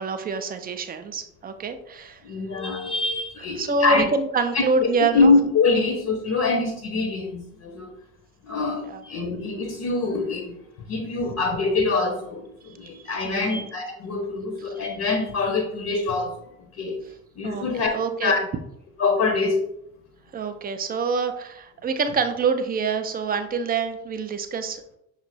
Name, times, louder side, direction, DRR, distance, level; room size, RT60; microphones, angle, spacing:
voice 1, 0.0-2.4 3.6-5.3 8.9-9.0 12.8-13.6 17.4-17.7 17.9-18.3 20.3-24.9, right 4 dB, 20° right, 8 dB, 0.4 m, -26 dB
voice 2, 2.2-4.0 4.5-7.9 8.4-10.6 10.9-17.0 17.4-18.0 18.2-18.4 19.0-19.6, left 3 dB, 40° left, 4 dB, 0.8 m, -24 dB
5.8 x 2.1 x 4.1 m, 0.79 s
figure-of-eight pair, 50°, 43 cm